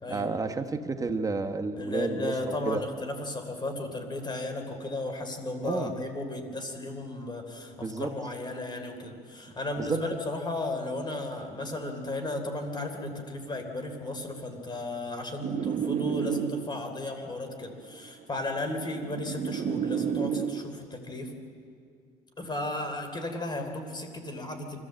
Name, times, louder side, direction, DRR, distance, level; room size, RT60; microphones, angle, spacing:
voice 1, 0.1-2.8 5.6-5.9 7.8-8.1 9.8-10.0, right 3 dB, 20° right, 5 dB, 1.2 m, -31 dB
voice 2, 1.8-21.3 22.4-24.8, left 2 dB, 25° left, 5 dB, 3.4 m, -35 dB
sound 1, 15.4-16.9 18.0-20.7, right 8 dB, 50° right, 1.3 m, -31 dB
25.0 x 15.0 x 7.8 m, 2.3 s
cardioid pair, 110°, 17 cm